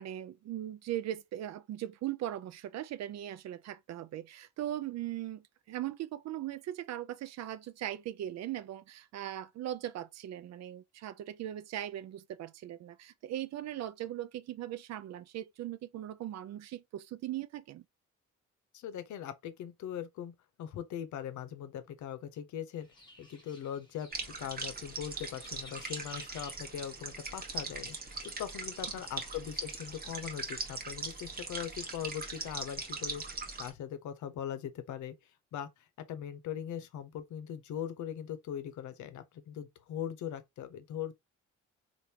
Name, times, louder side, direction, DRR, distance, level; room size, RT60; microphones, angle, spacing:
voice 1, 0.0-17.8, right 12 dB, 60° right, 0.5 m, -39 dB
voice 2, 18.7-22.9 23.2-24.1 24.4-27.9 28.2-33.2 33.6-35.1 35.5-35.7 36.0-41.1, left 9 dB, 70° left, 0.7 m, -40 dB
sound 1, 22.8-30.3, left 1 dB, 15° left, 1.0 m, -57 dB
sound 2, 24.1-33.7, right 3 dB, 30° right, 1.1 m, -40 dB
3.4 x 2.5 x 2.8 m
cardioid pair, 90°, 30 cm